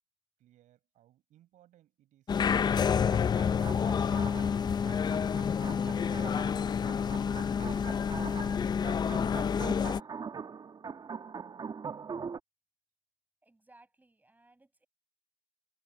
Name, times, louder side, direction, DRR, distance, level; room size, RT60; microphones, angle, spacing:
voice 1, 0.4-5.3, right 13 dB, 65° right, 7.5 m, -65 dB
sound 1, 2.3-10.0, left 7 dB, 30° left, 0.5 m, -29 dB
sound 2, 3.0-12.4, right 6 dB, 35° right, 1.4 m, -43 dB
voice 2, 13.4-14.9, right 2 dB, 10° right, 7.7 m, -62 dB
supercardioid pair, 85°, 14 cm